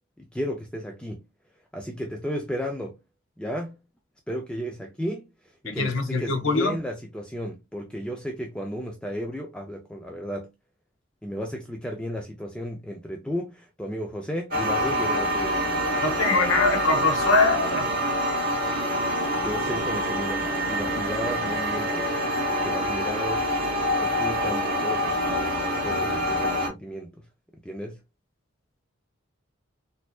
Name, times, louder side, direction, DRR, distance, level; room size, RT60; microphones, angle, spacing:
voice 1, 0.2-1.3 1.7-3.0 3.4-3.8 4.3-5.3 5.6-10.5 11.2-15.7 19.4-22.2 22.5-23.5 24.0-25.2 25.7-27.2 27.6-28.0, equal, 5° left, 0.4 m, -34 dB
voice 2, 5.6-6.8 16.0-17.8, left 3 dB, 80° left, 1.1 m, -23 dB
sound 1, 14.5-26.7, equal, 45° right, 1.9 m, -26 dB
4.2 x 2.7 x 2.3 m
head